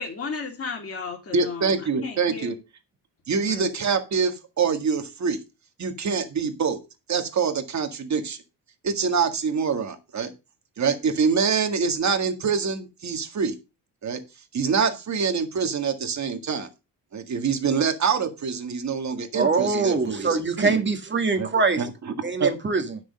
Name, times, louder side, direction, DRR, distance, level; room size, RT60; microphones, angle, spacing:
voice 1, 0.0-2.5 3.5-3.7, left 4 dB, 35° left, 2.9 m, -34 dB
voice 2, 1.3-2.5 3.3-5.4 5.8-6.8 7.1-8.4 8.8-10.3 10.8-13.6 14.0-14.2 14.5-16.7 17.1-20.8 21.4-21.5 21.8-22.5, right 5 dB, 40° right, 1.9 m, -25 dB
voice 3, 19.3-21.8 22.2-23.0, right 4 dB, 25° right, 1.8 m, -23 dB
10.0 x 6.4 x 5.3 m
cardioid pair, 120°, 41 cm